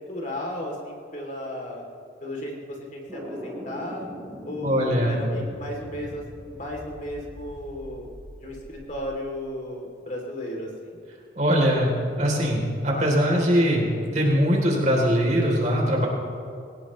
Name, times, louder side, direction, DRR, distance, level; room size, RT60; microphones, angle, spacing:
voice 1, 0.1-1.8 2.2-4.1 4.4-8.1 8.4-11.0, left 1 dB, 45° left, -1 dB, 3.1 m, -34 dB
sound 1, 3.1-9.2, equal, 15° right, 4.2 m, -41 dB
voice 2, 4.6-5.3 11.4-11.9 12.2-16.1, equal, 40° right, -1 dB, 3.5 m, -21 dB
22.0 x 18.0 x 3.2 m, 2.4 s
head